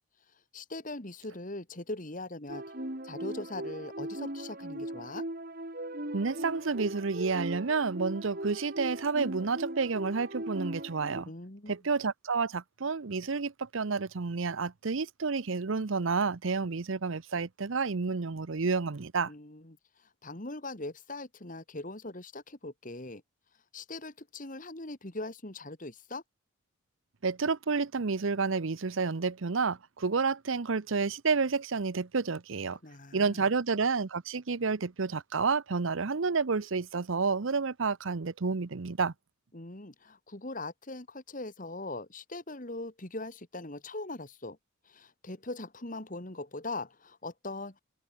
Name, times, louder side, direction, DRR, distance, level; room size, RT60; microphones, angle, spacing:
voice 1, 0.5-2.6 3.0-5.2 11.3-11.7 19.3-23.2 23.7-26.2 32.8-33.5 39.5-44.6 44.8-47.8, left 2 dB, 40° left, 2.1 m, -41 dB
sound 1, 2.5-11.2, right 1 dB, 45° right, 3.2 m, -39 dB
voice 2, 6.1-11.3 11.7-19.3 27.2-32.8 33.1-39.1, right 4 dB, 70° right, 0.7 m, -30 dB
head